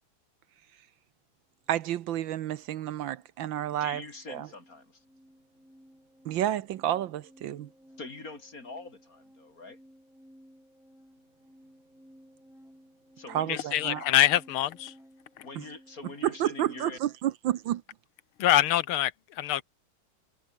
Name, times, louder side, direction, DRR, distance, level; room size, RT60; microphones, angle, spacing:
voice 1, 1.7-4.0 4.3-4.5 6.2-7.7 13.3-14.0 15.6-15.7 16.2-17.8, right 12 dB, 70° right, 1.5 m, -30 dB
voice 2, 3.8-4.9 8.0-9.8 13.2-13.8 15.4-17.0, left 3 dB, 40° left, 4.2 m, -44 dB
sound 1, 3.9-16.8, equal, ahead, 4.2 m, -57 dB
voice 3, 13.5-14.9 18.4-19.1 19.4-19.6, left 13 dB, 90° left, 1.8 m, -24 dB
omnidirectional pair, 2.3 m